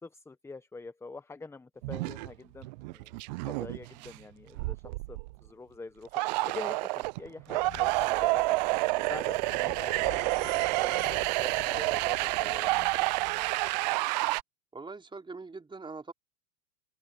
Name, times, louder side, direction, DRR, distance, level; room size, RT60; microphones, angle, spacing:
voice 1, 0.0-8.6 9.0-12.7, left 3 dB, 5° left, 1.0 m, -45 dB
sound 1, 1.8-2.3 2.6-4.2 4.5-5.5 6.1-14.4, right 24 dB, 30° right, 0.4 m, -29 dB
Squeak, 7.5-13.9, left 17 dB, 40° left, 6.1 m, -48 dB
voice 2, 14.7-16.1, right 3 dB, 10° right, 3.8 m, -42 dB
open air
hypercardioid pair, 115°, 46 cm